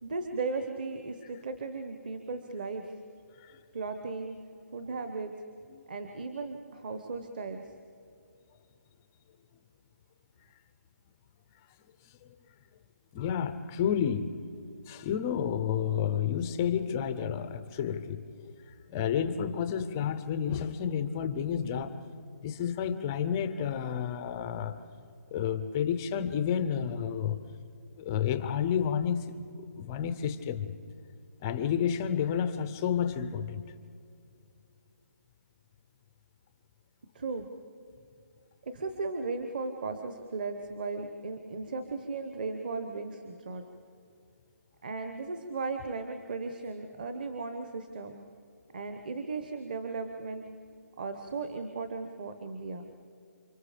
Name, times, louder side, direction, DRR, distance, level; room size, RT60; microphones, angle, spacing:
voice 1, 0.0-2.9 3.7-4.4 4.7-5.3 5.9-7.7 37.1-37.5 38.6-43.6 44.8-48.2 48.7-50.5 51.0-52.9, right 3 dB, 30° right, 7 dB, 1.1 m, -36 dB
voice 2, 13.1-14.4 14.9-18.5 18.9-21.9 22.4-24.8 25.3-27.4 28.0-30.7 31.4-33.6, left 8 dB, 10° left, 10 dB, 0.5 m, -30 dB
29.0 x 25.5 x 5.1 m, 2.5 s
hypercardioid pair, 175°, 9 cm